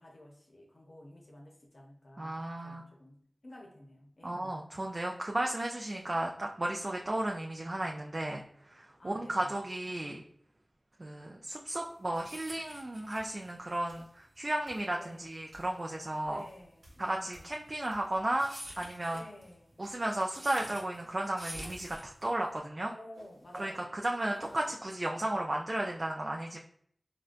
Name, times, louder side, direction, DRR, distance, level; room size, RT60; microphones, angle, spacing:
voice 1, 0.0-4.6 5.9-6.2 9.0-9.6 15.0-15.3 16.2-17.5 19.1-19.9 22.9-23.9 24.2-24.7 25.1-25.5, left 1 dB, 65° left, 0 dB, 0.7 m, -52 dB
voice 2, 2.2-2.8 4.2-10.2 11.0-16.4 17.0-19.2 19.8-22.9 23.6-26.6, right 1 dB, 45° right, 0 dB, 0.3 m, -34 dB
sound 1, 11.8-22.6, right 1 dB, 25° right, 0.9 m, -49 dB
sound 2, 13.1-13.4 13.9-14.1 14.6-15.0 15.5-15.8 16.2-18.2 18.6-19.1 21.1-22.0 23.1-23.8 24.4-24.7, right 1 dB, 85° right, 0.9 m, -53 dB
3.7 x 2.2 x 2.5 m, 0.66 s
cardioid pair, 40°, 0 cm